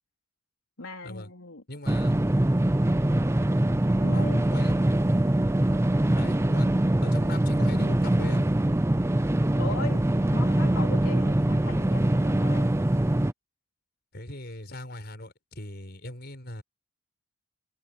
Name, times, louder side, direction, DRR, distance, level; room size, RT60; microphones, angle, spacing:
voice 1, 0.8-1.6 4.0-4.5 9.6-10.0 10.3-12.7, left 3 dB, 85° left, 4.0 m, -38 dB
voice 2, 1.7-2.1 4.1-4.8 6.1-6.7 7.0-8.5 14.1-16.6, left 1 dB, 50° left, 5.4 m, -40 dB
sound 1, 1.9-13.3, right 1 dB, 15° right, 0.5 m, -23 dB
head